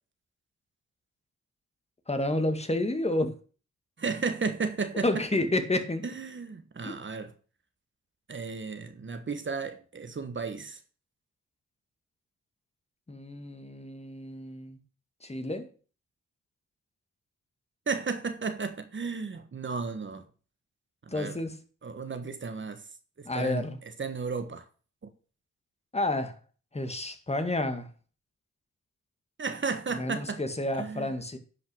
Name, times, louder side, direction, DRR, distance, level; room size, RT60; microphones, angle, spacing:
voice 1, 2.1-3.3 5.0-6.1 6.8-6.9 13.1-14.8 15.2-15.7 21.1-21.6 23.3-23.8 25.9-26.4 26.7-27.9 29.9-31.4, left 2 dB, 20° left, 2.0 m, -30 dB
voice 2, 4.0-5.2 6.0-7.3 8.3-10.8 17.9-20.2 21.1-21.4 21.8-22.8 23.2-23.7 24.0-24.7 29.4-30.4 30.8-31.1, right 4 dB, 40° right, 1.4 m, -33 dB
11.0 x 5.6 x 6.2 m
cardioid pair, 85°, 30 cm